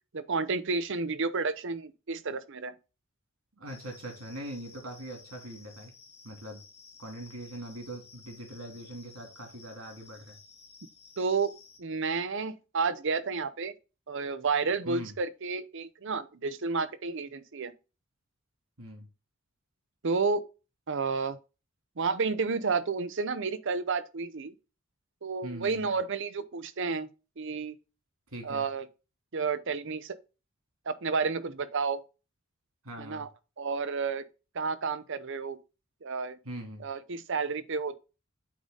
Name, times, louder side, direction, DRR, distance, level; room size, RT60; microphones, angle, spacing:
voice 1, 0.1-2.7 11.2-11.5 11.8-13.7 14.1-17.7 20.0-20.4 20.9-21.4 22.0-24.5 25.2-27.1 27.4-27.8 28.4-28.9 29.3-30.2 30.9-32.0 33.0-33.3 33.6-34.3 34.5-35.6 36.0-36.4 36.8-38.0, right 4 dB, 60° right, 0.7 m, -31 dB
voice 2, 3.6-5.9 6.2-6.6 7.0-10.4 14.8-15.1 18.8-19.1 25.4-25.9 28.3-28.7 32.8-33.3 36.4-36.8, right 1 dB, 80° right, 3.2 m, -42 dB
sound 1, 3.7-11.8, left 4 dB, 30° left, 1.7 m, -54 dB
8.5 x 3.8 x 4.0 m
head